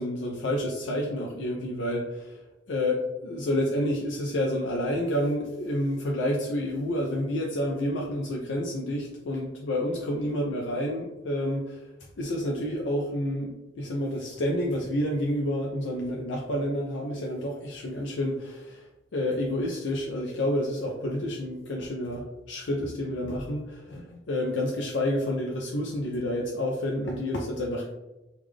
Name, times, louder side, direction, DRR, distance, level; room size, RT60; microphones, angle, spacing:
voice 1, 0.0-2.4 2.7-11.9 12.2-27.9, left 1 dB, 80° left, -1 dB, 0.5 m, -29 dB
3.5 x 2.4 x 3.2 m, 1.0 s
head